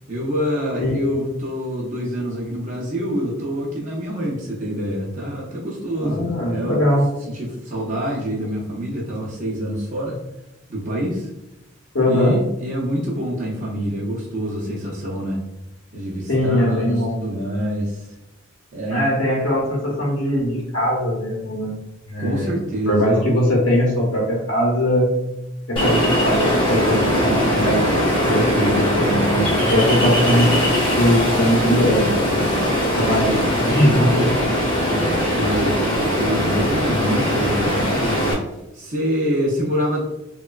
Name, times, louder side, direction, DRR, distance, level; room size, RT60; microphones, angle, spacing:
voice 1, 0.1-6.9 7.3-10.2 10.7-11.3 12.1-15.5 15.9-18.1 18.7-19.1 22.2-23.2 33.1-33.3 34.9-38.4 38.7-40.0, equal, 40° right, -4 dB, 0.5 m, -26 dB
voice 2, 0.8-1.2 5.9-7.1 11.9-12.4 16.3-17.2 18.9-21.8 22.1-22.6 22.9-25.1 25.7-27.9 28.2-30.5 30.9-32.5 32.9-34.3, equal, 65° left, -6 dB, 0.7 m, -20 dB
Ocean, 25.8-38.3, equal, 25° left, 0.7 m, -20 dB
2.9 x 2.2 x 2.2 m, 0.92 s
head